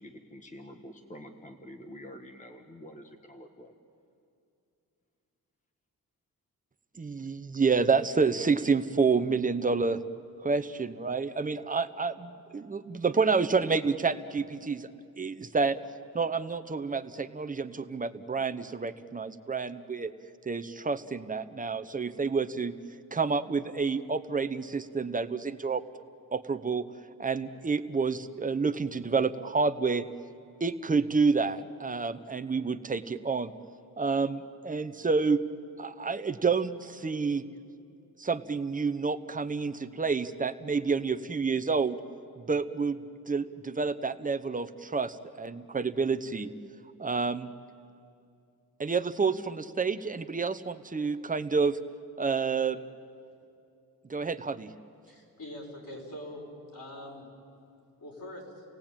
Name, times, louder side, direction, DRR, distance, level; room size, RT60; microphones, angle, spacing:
voice 1, 0.0-3.7, equal, 20° left, 5 dB, 1.3 m, -47 dB
voice 2, 7.0-10.0 10.4-14.9 15.2-15.8 16.1-20.1 20.4-22.7 23.1-25.8 26.3-26.9 27.2-30.0 30.6-33.5 34.0-35.4 35.8-37.5 38.2-42.0 42.4-43.0 43.3-46.5 47.0-47.5 48.8-51.8 52.2-52.8 54.1-54.7, right 4 dB, 20° right, 10 dB, 0.9 m, -29 dB
voice 3, 55.1-56.5 56.7-57.3 58.0-58.6, left 1 dB, 65° left, -2 dB, 6.6 m, -43 dB
30.0 x 18.5 x 8.9 m, 2.6 s
wide cardioid pair, 135°, 37 cm